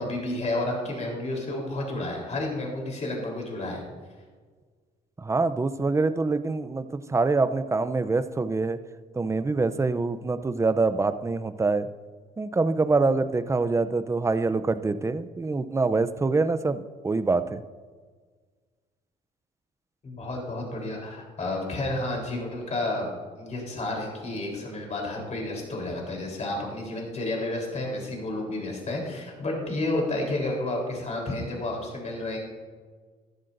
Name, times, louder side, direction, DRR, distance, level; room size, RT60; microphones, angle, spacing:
voice 1, 0.0-3.8 20.0-23.1 23.4-32.4, left 2 dB, 40° left, 0 dB, 3.7 m, -31 dB
voice 2, 5.2-8.8 9.1-11.9 12.4-17.6, right 3 dB, 15° right, 12 dB, 0.5 m, -25 dB
14.5 x 11.5 x 2.6 m, 1.5 s
cardioid pair, 85°, 17 cm